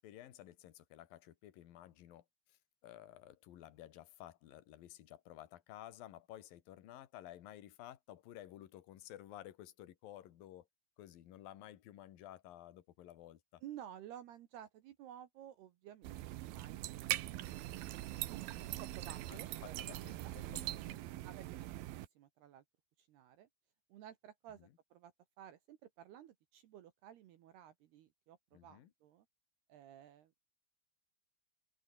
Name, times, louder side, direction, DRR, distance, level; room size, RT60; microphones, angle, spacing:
voice 1, 0.0-10.7 11.0-13.6 19.3-21.0 24.6-24.7 28.5-28.9, left 13 dB, 60° left, 2.8 m, -54 dB
voice 2, 13.6-17.6 17.9-18.1 18.8-20.3 21.2-21.9 22.2-22.6 23.0-23.5 23.9-29.3 29.7-30.3, right 11 dB, 65° right, 2.8 m, -54 dB
sound 1, 16.0-22.1, right 15 dB, 85° right, 2.1 m, -42 dB
omnidirectional pair, 5.8 m